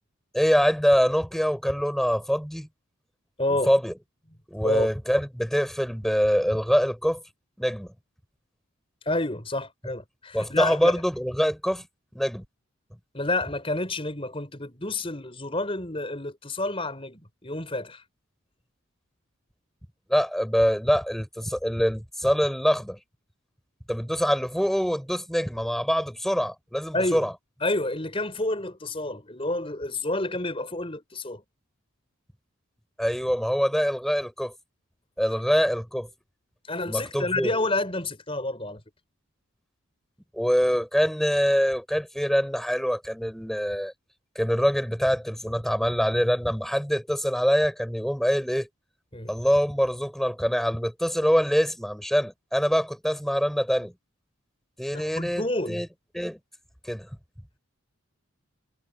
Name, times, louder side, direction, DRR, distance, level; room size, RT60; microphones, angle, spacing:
voice 1, 0.3-2.7 3.7-3.9 4.5-7.2 7.6-7.9 10.3-11.8 12.1-12.4 20.1-23.0 23.9-27.3 33.0-34.5 35.2-36.1 36.9-37.5 40.3-43.9 44.3-48.7 49.3-53.9 54.8-55.9 56.1-56.4 56.8-57.1, equal, ahead, 6.5 m, -24 dB
voice 2, 3.4-3.7 4.6-4.9 9.1-10.9 13.1-18.0 26.9-27.3 27.6-31.4 36.7-38.8 49.1-49.3 54.9-55.9, left 2 dB, 25° left, 5.5 m, -29 dB
head